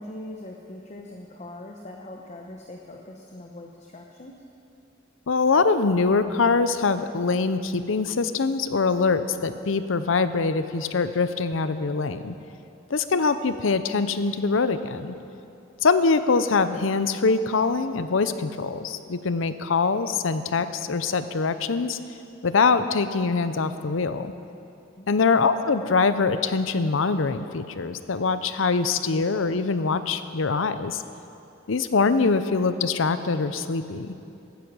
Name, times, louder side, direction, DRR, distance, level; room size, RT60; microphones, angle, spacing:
voice 1, 0.0-4.4 25.0-25.1, left 1 dB, 35° left, 1 dB, 0.9 m, -41 dB
voice 2, 5.3-12.3 12.9-15.2 15.8-22.0 22.4-24.3 25.1-31.0 31.7-34.1, left 4 dB, 75° left, 11 dB, 0.6 m, -23 dB
15.5 x 10.0 x 6.2 m, 2.7 s
head